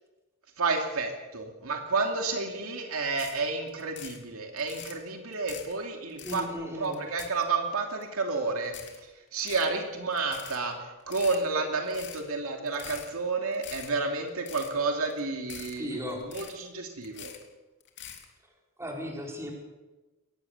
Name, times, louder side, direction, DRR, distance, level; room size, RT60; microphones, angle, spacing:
voice 1, 0.6-8.7 9.3-17.3, right 3 dB, 70° right, 3 dB, 2.7 m, -31 dB
sound 1, 3.2-3.4 3.7-4.2 4.6-5.0 5.3-5.7 6.1-6.5 6.8-7.7 8.0-8.1 8.6-9.0 9.3-9.7 10.1-10.6 11.0-11.4 11.9-12.2 12.7-13.1 13.5-13.9 14.3-14.7 15.0-15.2 15.5-15.8 16.1-16.7 17.0-17.4 17.8-18.2, left 9 dB, 55° left, 2.8 m, -44 dB
voice 2, 6.2-7.0 15.8-16.2 18.8-19.5, equal, 15° right, 0 dB, 4.9 m, -36 dB
22.5 x 19.0 x 7.2 m, 1.2 s
head